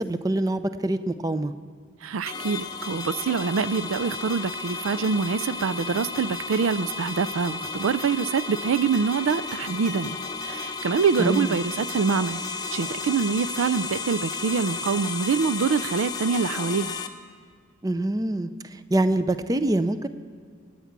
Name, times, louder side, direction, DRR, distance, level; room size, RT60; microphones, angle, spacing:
voice 1, 0.0-1.5 11.2-11.6 17.8-20.1, right 1 dB, 15° right, 11 dB, 0.4 m, -25 dB
voice 2, 2.0-10.2 10.4-12.4 12.7-16.9, right 5 dB, 85° right, 16 dB, 0.4 m, -25 dB
sound 1, 2.3-17.1, left 4 dB, 20° left, 0.8 m, -33 dB
24.0 x 9.5 x 5.9 m, 2.1 s
head